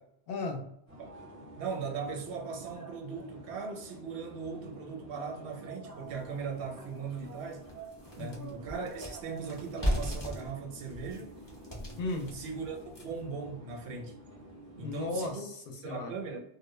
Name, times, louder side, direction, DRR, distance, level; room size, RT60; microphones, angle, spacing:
voice 1, 0.3-0.6 8.2-8.6 12.0-12.3 14.8-16.1, left 2 dB, 65° left, 0.7 m, -36 dB
sound 1, 0.9-15.3, right 1 dB, 20° right, 0.5 m, -49 dB
voice 2, 1.6-7.7 8.1-11.3 12.3-14.2 14.8-15.5 15.8-16.4, right 5 dB, 75° right, 0.9 m, -39 dB
sound 2, 6.2-6.3 6.8-6.9 7.3-13.3, equal, 25° left, 0.6 m, -37 dB
2.1 x 2.1 x 3.0 m
omnidirectional pair, 1.1 m